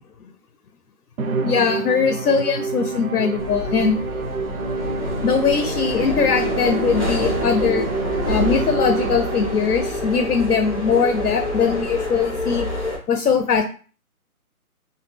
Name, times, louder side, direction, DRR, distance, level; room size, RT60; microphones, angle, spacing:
Musical instrument, 1.2-9.7, right 4 dB, 65° right, 0.5 m, -27 dB
voice 1, 1.4-4.0 5.2-7.9 8.3-12.7 13.1-13.6, left 6 dB, 85° left, 6 dB, 0.6 m, -20 dB
sound 1, 3.4-13.0, left 1 dB, 25° left, 0.6 m, -27 dB
2.2 x 2.1 x 3.2 m, 0.39 s
hypercardioid pair, 170°, 45 cm